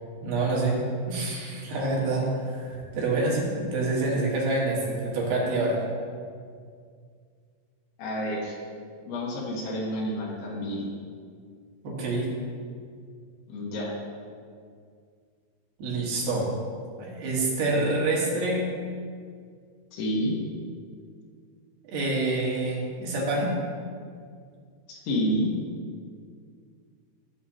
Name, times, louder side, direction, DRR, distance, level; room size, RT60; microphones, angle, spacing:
voice 1, 0.2-5.8 11.8-12.3 15.8-16.6 17.0-18.7 21.8-23.6, right 2 dB, 65° right, -4 dB, 3.1 m, -27 dB
voice 2, 8.0-8.6 9.0-10.9 13.5-13.9 19.9-20.3 24.9-25.5, equal, 80° left, -4 dB, 3.6 m, -29 dB
14.0 x 6.9 x 2.8 m, 2.1 s
omnidirectional pair, 5.3 m